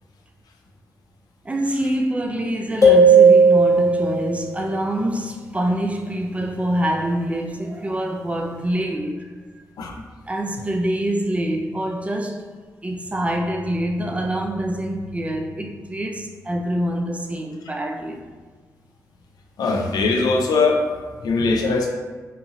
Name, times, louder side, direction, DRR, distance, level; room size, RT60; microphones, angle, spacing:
voice 1, 1.4-9.3 9.9-12.4 12.8-18.3, right 1 dB, 20° right, 0.4 m, -25 dB
sound 1, 2.8-4.3, right 3 dB, 55° left, 0.9 m, -13 dB
voice 2, 19.6-20.8 21.2-21.9, left 3 dB, 85° left, 0.4 m, -20 dB
2.7 x 2.5 x 2.7 m
cardioid pair, 60°, 7 cm